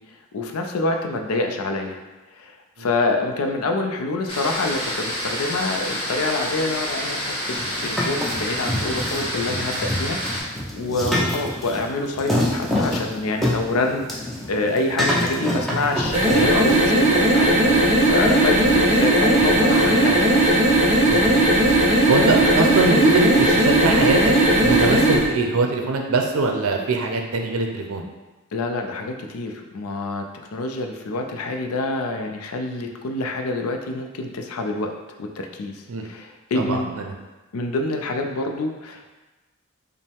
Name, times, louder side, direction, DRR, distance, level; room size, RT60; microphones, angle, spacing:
voice 1, 0.3-2.0 2.4-20.4 28.5-30.3 30.5-34.9 35.2-36.9 37.5-39.2, left 2 dB, 90° left, 3 dB, 0.5 m, -27 dB
sound 1, 4.3-10.4, equal, 25° left, 1.1 m, -28 dB
sound 2, 7.5-16.8, left 1 dB, ahead, 0.6 m, -26 dB
sound 3, 16.0-25.2, right 1 dB, 35° right, 0.8 m, -17 dB
voice 2, 21.1-21.4 22.1-24.3 24.6-28.1 35.9-36.1 36.6-37.1, right 3 dB, 75° right, 2 dB, 0.5 m, -22 dB
5.2 x 2.1 x 3.4 m, 1.2 s
head